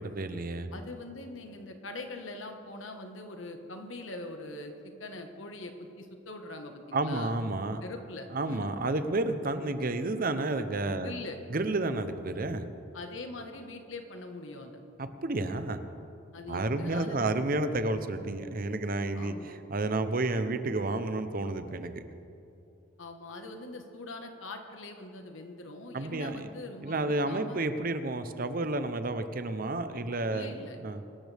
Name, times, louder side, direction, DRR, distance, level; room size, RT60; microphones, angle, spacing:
voice 1, 0.0-0.7 6.9-7.8 8.3-11.1 11.5-12.6 15.0-15.8 16.5-22.0 25.9-26.5 26.8-30.5 30.8-31.0, right 2 dB, 45° right, 10 dB, 0.8 m, -31 dB
voice 2, 0.7-7.4 7.8-8.7 11.0-11.4 12.9-14.8 16.3-17.3 19.1-19.5 23.0-27.6 29.7-29.8 30.3-30.8, left 2 dB, 75° left, 5 dB, 1.5 m, -42 dB
24.5 x 12.5 x 3.5 m, 2.8 s
head